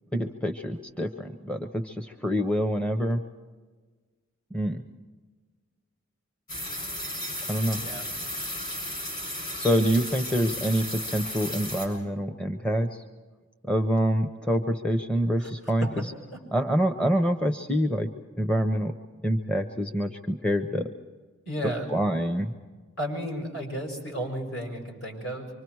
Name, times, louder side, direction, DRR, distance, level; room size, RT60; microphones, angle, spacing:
voice 1, 0.1-3.2 4.5-4.8 7.5-7.8 9.6-13.0 13.6-15.9 16.5-18.1 18.4-18.9 19.2-20.9 21.9-22.5, equal, 5° left, 6 dB, 0.7 m, -26 dB
sound 1, 6.5-11.9, left 1 dB, 40° left, 6.9 m, -34 dB
voice 2, 21.5-21.9 23.0-25.5, equal, 60° left, 1 dB, 6.4 m, -33 dB
25.5 x 25.0 x 4.7 m, 1.4 s
head